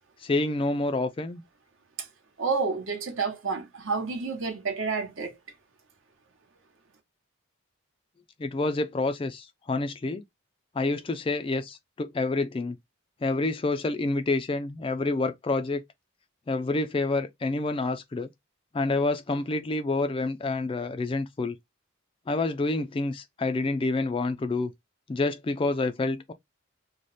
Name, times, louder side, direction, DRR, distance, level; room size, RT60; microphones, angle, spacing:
voice 1, 0.2-1.4 8.4-10.2 10.8-12.8 13.2-15.8 16.5-18.3 18.7-21.6 22.3-24.7 25.1-26.3, left 2 dB, 25° left, 0.3 m, -28 dB
voice 2, 2.4-5.3, right 4 dB, 65° right, 1.0 m, -29 dB
3.2 x 2.1 x 3.9 m
head